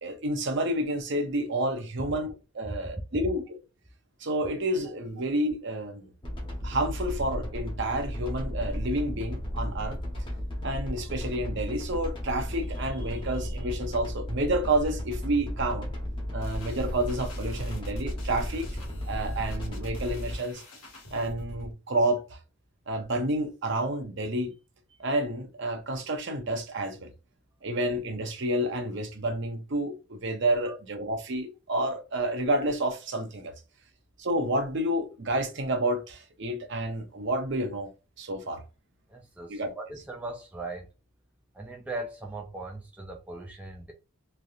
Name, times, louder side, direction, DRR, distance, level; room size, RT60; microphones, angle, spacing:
voice 1, 0.0-3.6 4.2-6.1 6.6-10.0 10.6-15.9 16.3-18.7 19.1-20.6 21.1-22.4 22.9-24.5 25.0-27.1 27.6-33.5 34.2-37.9 38.2-38.6 39.5-39.7, right 1 dB, 50° right, 0.6 m, -29 dB
sound 1, 6.2-20.3, equal, 20° left, 0.8 m, -34 dB
sound 2, 16.4-21.7, left 1 dB, 85° left, 1.2 m, -46 dB
voice 2, 39.1-40.9 41.5-43.9, right 2 dB, 5° right, 0.3 m, -39 dB
3.2 x 2.7 x 2.4 m
head